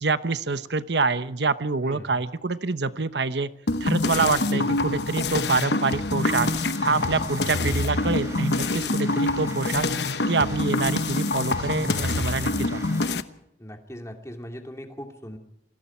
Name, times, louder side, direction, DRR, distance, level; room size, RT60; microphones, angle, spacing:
voice 1, 0.0-3.5 3.8-6.5 6.8-9.9 10.3-13.0, right 4 dB, 80° right, 12 dB, 1.0 m, -26 dB
voice 2, 1.8-2.2 4.2-4.8 13.6-15.4, equal, 15° left, 3 dB, 2.5 m, -39 dB
sound 1, 3.7-13.2, left 2 dB, 75° left, 1.1 m, -26 dB
sound 2, 6.4-13.1, right 1 dB, 15° right, 2.4 m, -41 dB
28.0 x 20.5 x 4.5 m, 0.83 s
head